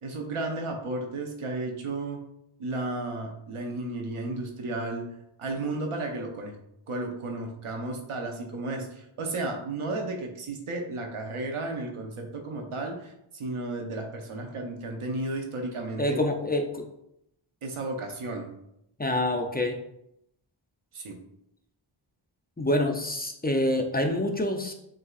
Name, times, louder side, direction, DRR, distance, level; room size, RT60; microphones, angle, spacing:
voice 1, 0.0-2.2 2.6-6.6 6.9-16.2 17.6-18.5 20.9-21.2, right 2 dB, 90° right, 2 dB, 0.8 m, -33 dB
voice 2, 16.0-16.8 19.0-19.8 22.6-24.7, left 1 dB, 20° left, 3 dB, 0.5 m, -26 dB
6.6 x 2.7 x 2.4 m, 0.79 s
wide cardioid pair, 55°, 49 cm